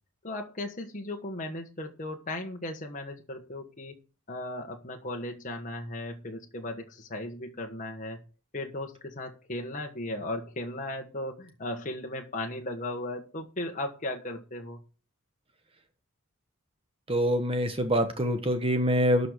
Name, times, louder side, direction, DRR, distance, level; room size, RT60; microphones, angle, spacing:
voice 1, 0.2-3.9 4.3-8.2 8.5-14.8, left 1 dB, 40° left, 2 dB, 1.4 m, -36 dB
voice 2, 17.1-19.3, equal, 25° right, 7 dB, 1.2 m, -25 dB
12.5 x 5.5 x 6.6 m, 0.35 s
head